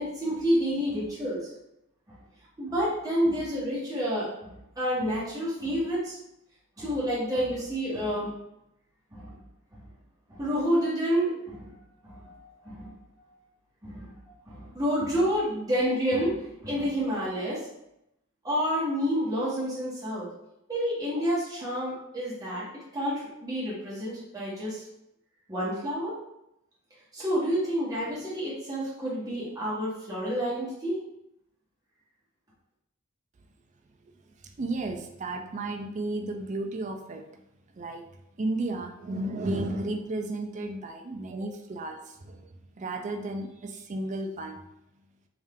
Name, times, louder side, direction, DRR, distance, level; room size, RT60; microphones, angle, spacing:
voice 1, 0.0-1.4 2.6-6.2 6.8-8.3 9.1-9.3 9.7-9.8 10.3-11.7 12.0-12.9 13.8-14.1 14.5-17.6 18.4-20.3 20.7-22.7 22.9-24.8 25.5-26.1 27.1-31.0, equal, 15° right, -8 dB, 1.4 m, -29 dB
voice 2, 34.6-37.2 37.8-38.0 38.4-42.5 42.8-44.6, right 2 dB, 35° right, 4 dB, 0.4 m, -33 dB
3.5 x 2.7 x 3.5 m, 0.84 s
head